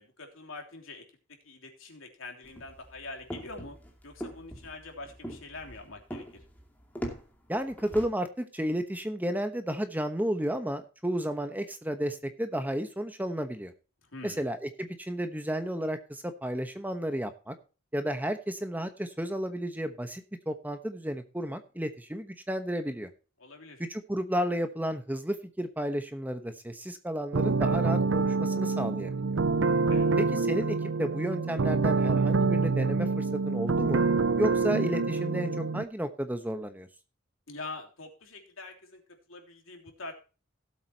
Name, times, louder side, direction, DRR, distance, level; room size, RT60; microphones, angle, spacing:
voice 1, 0.0-3.8 4.0-6.4 14.0-14.5 23.4-23.8 29.9-30.1 37.5-40.1, left 3 dB, 75° left, 2 dB, 3.2 m, -44 dB
sound 1, 2.4-8.1, equal, 10° left, 2.4 m, -41 dB
voice 2, 7.5-13.7 14.2-17.5 17.9-23.1 23.8-29.1 30.2-34.0 34.4-36.9, equal, 10° right, 8 dB, 1.0 m, -32 dB
sound 2, 27.3-35.8, right 4 dB, 65° right, 0.6 m, -26 dB
17.5 x 8.0 x 2.9 m, 0.34 s
head